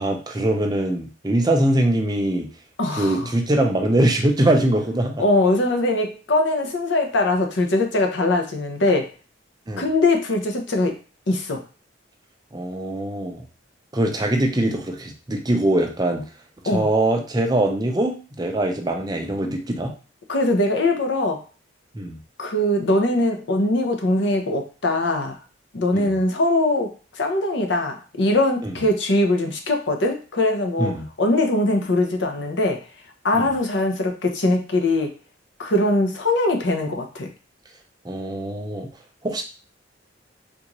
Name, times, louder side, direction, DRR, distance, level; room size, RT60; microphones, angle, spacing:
voice 1, 0.0-2.5 3.0-5.2 9.7-9.9 12.5-13.4 13.9-16.3 16.6-19.9 21.9-22.2 25.9-26.2 28.6-28.8 30.8-31.1 33.3-33.5 38.0-38.9 39.2-39.4, right 1 dB, 20° right, 2 dB, 0.5 m, -22 dB
voice 2, 2.8-3.3 5.2-9.1 9.8-10.9 11.3-11.6 16.7-16.9 20.3-21.4 22.4-25.4 25.7-26.9 27.2-32.8 33.2-35.1 35.6-37.3, left 2 dB, 65° left, 4 dB, 0.7 m, -21 dB
3.7 x 2.5 x 2.9 m, 0.35 s
head